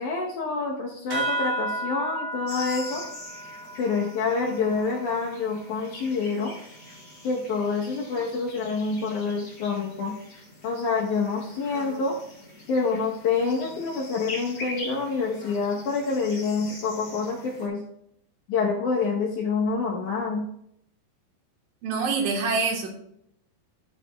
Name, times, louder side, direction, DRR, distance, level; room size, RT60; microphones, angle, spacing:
voice 1, 0.0-3.0 3.8-6.5 7.2-10.1 10.6-12.1 12.7-17.8 18.5-20.5, left 4 dB, 75° left, -1 dB, 1.8 m, -27 dB
sound 1, 1.1-6.0, right 1 dB, 35° right, 1.7 m, -34 dB
sound 2, 2.5-17.7, left 1 dB, 25° left, 3.2 m, -43 dB
voice 2, 21.8-22.9, right 4 dB, 65° right, 2 dB, 2.6 m, -25 dB
13.0 x 8.1 x 2.3 m, 0.72 s
omnidirectional pair, 4.9 m